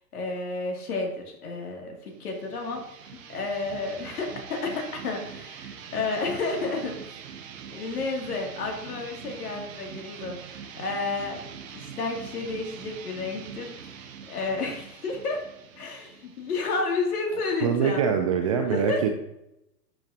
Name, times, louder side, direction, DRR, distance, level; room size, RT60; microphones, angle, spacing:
voice 1, 0.1-7.2 7.7-11.4 11.7-15.4 15.8-18.0 18.7-19.0, left 3 dB, 60° left, 0 dB, 3.0 m, -31 dB
sound 1, 2.1-17.5, right 7 dB, 50° right, 1.3 m, -43 dB
voice 2, 17.6-19.2, right 7 dB, 20° right, 6 dB, 0.4 m, -24 dB
12.0 x 6.3 x 2.9 m, 0.84 s
figure-of-eight pair, 110°, 50 cm